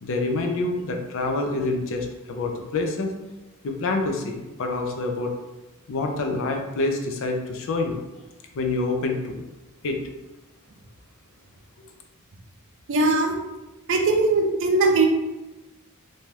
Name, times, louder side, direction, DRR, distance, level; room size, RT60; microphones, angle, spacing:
voice 1, 0.0-3.1 3.6-5.3 5.9-8.0 8.5-9.4 9.8-10.0, left 2 dB, 65° left, 4 dB, 0.4 m, -27 dB
voice 2, 12.9-13.3 13.9-15.1, right 3 dB, 60° right, 3 dB, 0.5 m, -20 dB
2.7 x 2.2 x 3.2 m, 1.1 s
head